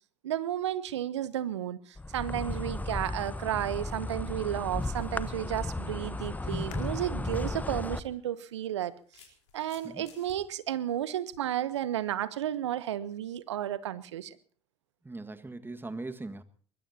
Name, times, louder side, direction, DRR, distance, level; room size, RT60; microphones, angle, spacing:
voice 1, 0.2-8.9 9.5-14.4, right 11 dB, 80° right, 16 dB, 1.0 m, -33 dB
Insect, 2.0-8.0, left 2 dB, 10° left, 1.0 m, -34 dB
sound 1, 6.7-10.1 10.7-10.8 11.4-11.8 12.2-12.3, left 7 dB, 60° left, 5.3 m, -59 dB
sound 2, 7.2-7.4 8.4-10.4, left 8 dB, 80° left, 4.0 m, -57 dB
voice 2, 15.0-16.4, right 2 dB, 15° right, 10 dB, 1.8 m, -40 dB
23.5 x 21.0 x 2.9 m, 0.43 s
hypercardioid pair, 65°, 15 cm